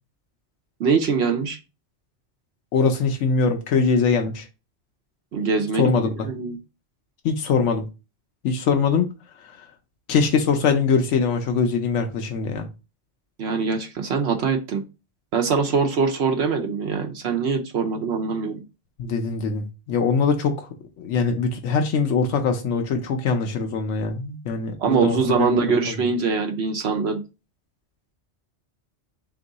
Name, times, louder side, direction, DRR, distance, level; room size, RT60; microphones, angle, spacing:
voice 1, 0.8-1.6 5.3-5.9 6.2-6.6 13.4-14.8 15.3-18.6 24.8-27.2, right 5 dB, 70° right, 0.9 m, -23 dB
voice 2, 2.7-4.5 5.8-6.3 7.2-7.8 8.4-9.1 9.4-9.7 10.1-12.7 19.0-20.7 21.0-25.5 25.8-26.0, left 5 dB, 90° left, 1.0 m, -22 dB
3.6 x 3.0 x 3.9 m
omnidirectional pair, 1.2 m